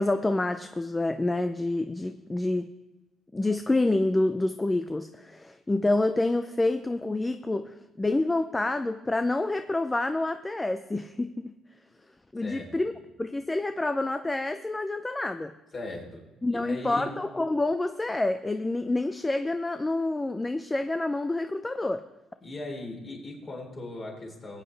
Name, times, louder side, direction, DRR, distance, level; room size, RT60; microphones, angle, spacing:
voice 1, 0.0-2.7 3.3-11.5 12.3-12.9 13.2-15.5 16.4-22.0, left 2 dB, 15° left, 9 dB, 0.4 m, -28 dB
voice 2, 12.4-12.9 15.7-17.1 22.4-24.6, left 2 dB, 30° left, 0 dB, 3.4 m, -39 dB
21.5 x 8.8 x 3.3 m, 1.1 s
cardioid pair, 135°, 0 cm